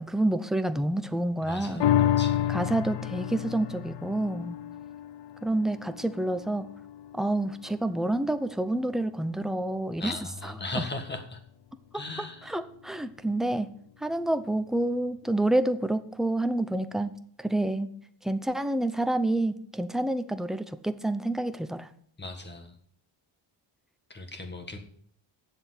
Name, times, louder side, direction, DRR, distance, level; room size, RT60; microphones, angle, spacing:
voice 1, 0.0-1.9 2.5-4.6 5.4-6.6 7.1-10.2 10.4-10.8 11.9-12.0 12.4-13.7 14.0-17.1 17.4-17.9 18.2-21.9, right 1 dB, ahead, 9 dB, 0.6 m, -28 dB
voice 2, 1.4-2.6 10.0-11.4 11.9-12.6 22.2-22.8 24.1-24.8, left 2 dB, 20° left, 6 dB, 1.7 m, -38 dB
sound 1, 1.8-8.5 8.9-9.0, left 11 dB, 60° left, 0.6 m, -30 dB
8.1 x 7.0 x 8.2 m, 0.62 s
wide cardioid pair, 145°, 46 cm